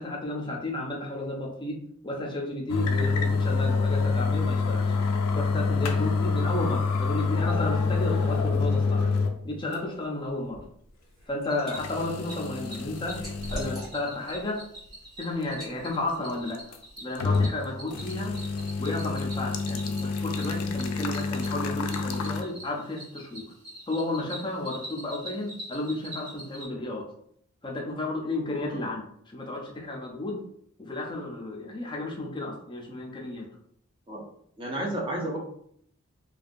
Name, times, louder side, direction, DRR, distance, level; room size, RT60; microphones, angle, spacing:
voice 1, 0.0-4.9 5.3-9.1 9.4-10.6 11.3-13.2 13.5-14.6 15.2-16.6 17.0-18.4 18.8-23.5 23.9-27.1 27.6-30.4 30.8-33.5, left 2 dB, 20° left, -1 dB, 0.5 m, -33 dB
sound 1, 2.7-9.4 9.7-9.8 10.6-10.7 11.7-13.9 14.4-14.5 16.6-17.6 17.9-22.4, left 4 dB, 85° left, 0.4 m, -27 dB
Liquid, 10.9-11.8 12.2-14.3 14.7-14.9 15.5-15.8, equal, ahead, 1.0 m, -40 dB
Cricket, 11.5-26.7, right 1 dB, 50° right, 1.0 m, -45 dB
voice 2, 34.6-35.4, right 1 dB, 20° right, -2 dB, 0.6 m, -31 dB
2.6 x 2.2 x 2.5 m, 0.67 s
head